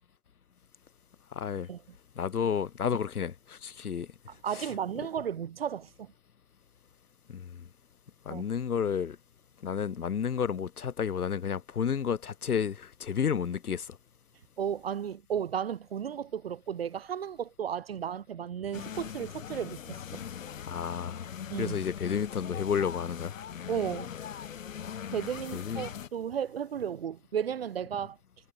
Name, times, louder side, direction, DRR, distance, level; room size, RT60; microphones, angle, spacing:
voice 1, 1.3-1.7 2.2-4.1 4.5-4.7 7.3-7.7 8.3-9.2 9.6-14.0 20.7-21.3 21.6-23.3 25.5-25.9, left 7 dB, 80° left, 2.1 m, -31 dB
voice 2, 4.3-6.1 8.3-8.4 14.6-20.2 21.5-21.8 23.7-24.1 25.1-28.2, right 8 dB, 40° right, 1.5 m, -34 dB
sound 1, 18.7-26.1, left 8 dB, 60° left, 1.2 m, -41 dB
hypercardioid pair, 170°, 44 cm